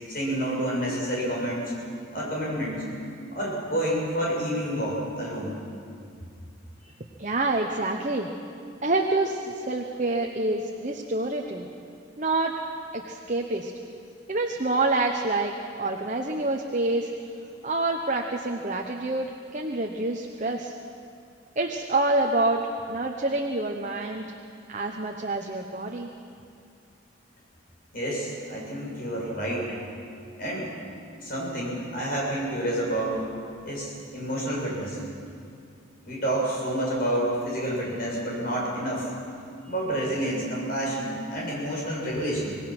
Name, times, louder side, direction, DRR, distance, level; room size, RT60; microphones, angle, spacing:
voice 1, 0.1-1.7 2.1-2.8 3.3-5.6 27.9-29.8 30.4-30.7 31.2-33.2 33.6-35.0 36.1-39.1 39.7-42.6, right 1 dB, 45° left, -3 dB, 7.0 m, -29 dB
voice 2, 7.2-8.3 8.8-11.7 12.2-12.5 12.9-13.7 14.3-15.5 15.8-17.1 17.6-20.7 21.6-22.6 22.9-24.3 24.7-26.1, right 2 dB, 40° right, 2 dB, 1.0 m, -27 dB
25.5 x 19.0 x 6.1 m, 2.4 s
head